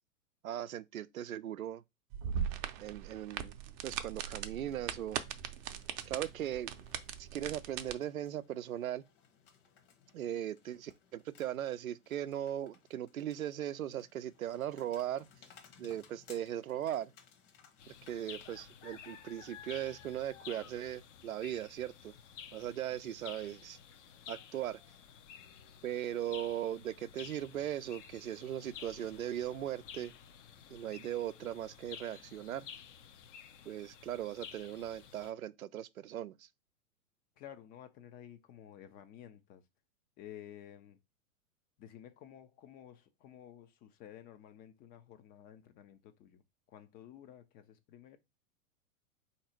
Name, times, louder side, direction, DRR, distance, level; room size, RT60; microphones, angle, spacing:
voice 1, 0.4-1.8 2.8-3.6 3.8-5.2 6.1-6.8 7.2-9.0 10.1-15.3 15.8-17.1 17.9-22.1 22.5-23.8 24.3-24.8 25.8-30.1 30.7-32.7 33.7-36.5, right 11 dB, 90° right, 0.5 m, -39 dB
sound 1, 2.1-7.9, right 9 dB, 35° right, 0.6 m, -40 dB
sound 2, 4.6-18.6, left 7 dB, 45° left, 1.2 m, -63 dB
sound 3, 17.8-35.3, left 8 dB, 60° left, 0.8 m, -52 dB
voice 2, 37.4-39.6 40.2-41.0 41.8-46.4 46.7-48.2, left 11 dB, 25° left, 0.4 m, -53 dB
3.9 x 2.9 x 4.3 m
hypercardioid pair, 110°, 40 cm